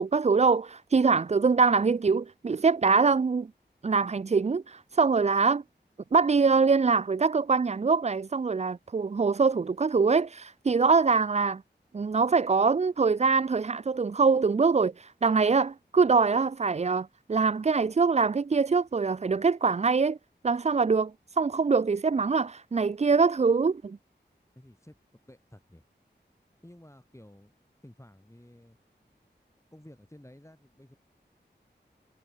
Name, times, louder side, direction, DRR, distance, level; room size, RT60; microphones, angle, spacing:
voice 1, 0.0-3.5 3.8-5.6 6.1-11.6 11.9-20.2 20.4-24.0, right 4 dB, 35° right, 0.4 m, -24 dB
voice 2, 24.6-25.0 25.3-25.8 26.6-27.5 27.8-28.8 29.7-31.0, left 1 dB, 15° left, 5.2 m, -52 dB
wide cardioid pair, 60°, 19 cm